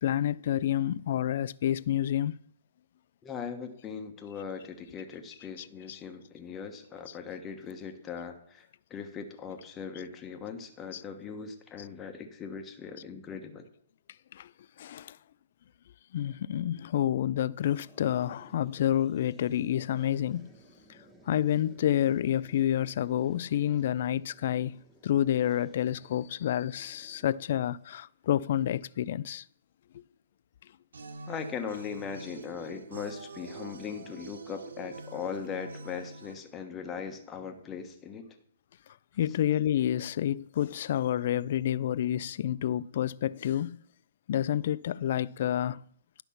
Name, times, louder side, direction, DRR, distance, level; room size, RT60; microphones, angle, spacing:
voice 1, 0.0-2.3 5.6-6.0 7.1-7.2 10.9-11.0 11.8-11.9 14.3-14.5 14.8-15.2 16.1-20.5 21.3-29.4 29.9-30.0 39.2-43.8 44.3-45.8, left 11 dB, 55° left, 0.3 m, -29 dB
voice 2, 3.2-13.6 31.3-38.3, left 6 dB, 20° left, 1.2 m, -39 dB
sound 1, 17.6-28.0, right 1 dB, 5° right, 1.2 m, -58 dB
sound 2, 30.9-36.4, right 3 dB, 75° right, 0.8 m, -45 dB
11.0 x 5.8 x 5.7 m
hypercardioid pair, 140°, 0 cm